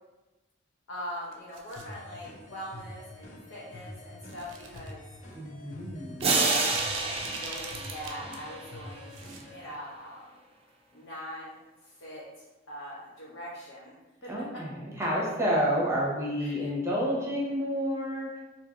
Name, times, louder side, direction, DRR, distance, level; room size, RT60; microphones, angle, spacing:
voice 1, 0.9-5.0 7.0-9.1 9.5-10.4 10.9-11.6 11.8-13.9 14.2-14.6 16.4-16.7, equal, 85° left, -7 dB, 0.7 m, -42 dB
sound 1, 1.2-1.9 2.8-3.0 4.2-4.9 5.3-5.4 6.0-8.4 8.7-9.4 9.7-9.8, right 5 dB, 80° right, 0.5 m, -42 dB
sound 2, 1.8-9.6, left 1 dB, 40° left, 0.6 m, -46 dB
voice 2, 5.3-6.3 14.3-18.4, equal, 15° right, -5 dB, 0.9 m, -29 dB
sound 3, 6.2-8.9, right 3 dB, 30° right, 0.5 m, -29 dB
4.3 x 2.7 x 2.5 m, 1.1 s
head